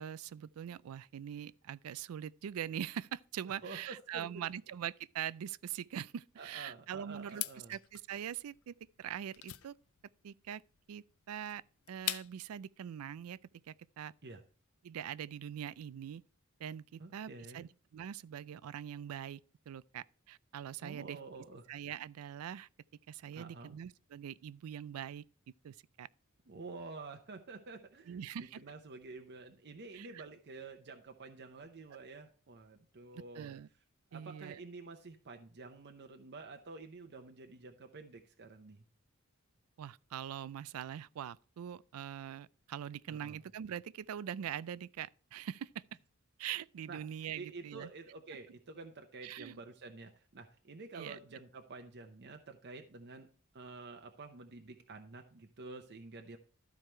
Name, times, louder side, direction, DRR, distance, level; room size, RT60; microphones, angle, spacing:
voice 1, 0.0-7.4 7.7-9.8 10.2-10.6 10.9-11.6 11.9-13.4 13.7-14.1 14.8-16.2 16.6-19.4 19.7-21.2 21.7-22.7 23.1-25.2 25.6-26.1 28.1-28.6 29.9-30.2 33.1-33.7 34.1-34.6 39.8-45.8 46.4-47.9 49.2-49.6 50.9-51.2, right 9 dB, 90° right, 0.4 m, -43 dB
voice 2, 3.6-4.3 6.4-7.8 14.2-14.4 17.0-17.7 20.8-21.6 23.4-23.7 26.5-28.2 28.5-33.5 34.1-38.8 43.1-43.4 46.9-47.0 47.3-53.3 53.5-56.4, right 3 dB, 55° right, 0.7 m, -49 dB
sound 1, 7.3-12.6, left 15 dB, 75° left, 0.5 m, -43 dB
12.5 x 4.8 x 4.4 m
head